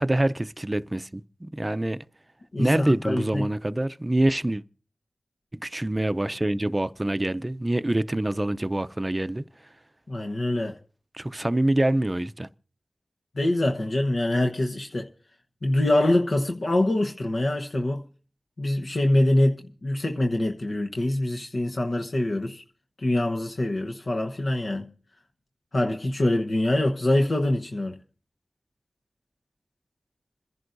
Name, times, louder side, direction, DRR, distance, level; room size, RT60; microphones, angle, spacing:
voice 1, 0.0-2.0 2.6-4.6 5.5-9.4 11.1-12.5, right 1 dB, 25° right, 0.5 m, -25 dB
voice 2, 2.5-3.5 10.1-10.8 13.3-15.1 15.6-18.0 18.6-22.6 23.0-24.9 25.7-28.0, left 1 dB, 65° left, 1.0 m, -24 dB
27.5 x 11.0 x 2.6 m
cardioid pair, 45°, 0 cm